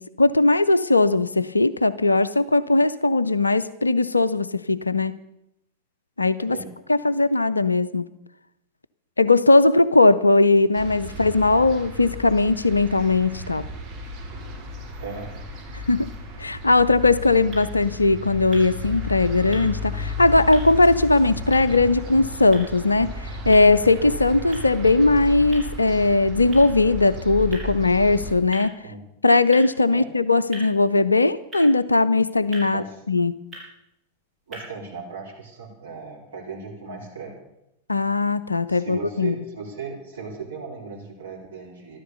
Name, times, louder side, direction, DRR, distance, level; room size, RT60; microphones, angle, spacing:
voice 1, 0.0-5.2 6.2-6.6 6.9-8.1 9.2-13.7 15.7-16.1 16.4-28.8 29.2-33.3 37.9-39.3, left 3 dB, 80° left, 16 dB, 0.4 m, -19 dB
sound 1, 10.7-28.3, left 1 dB, 35° right, 4.4 m, -34 dB
voice 2, 15.0-15.3 28.8-29.0 29.9-30.1 32.7-33.0 34.5-37.3 38.7-42.0, right 5 dB, 65° right, -4 dB, 4.4 m, -37 dB
sound 2, 16.9-34.9, right 1 dB, 10° right, 7.2 m, -47 dB
13.5 x 12.5 x 6.8 m, 0.81 s
figure-of-eight pair, 90°, 0 cm